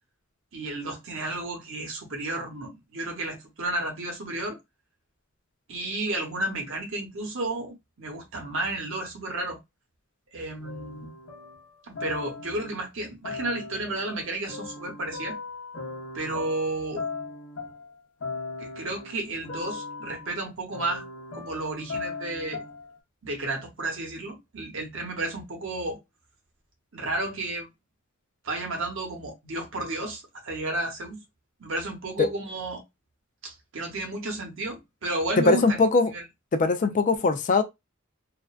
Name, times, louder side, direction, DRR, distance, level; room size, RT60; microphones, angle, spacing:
voice 1, 0.5-4.6 5.7-9.6 10.3-11.1 11.8-15.4 16.1-17.0 18.6-21.0 21.3-22.6 23.2-26.0 26.9-27.7 28.4-31.2 31.6-32.8 33.4-35.8, right 2 dB, 65° right, 0.9 m, -32 dB
sound 1, 10.6-12.8 13.2-23.0, left 4 dB, 75° left, 0.8 m, -38 dB
voice 2, 35.4-36.1 36.5-37.6, left 3 dB, 40° left, 0.4 m, -21 dB
2.4 x 2.1 x 2.3 m
head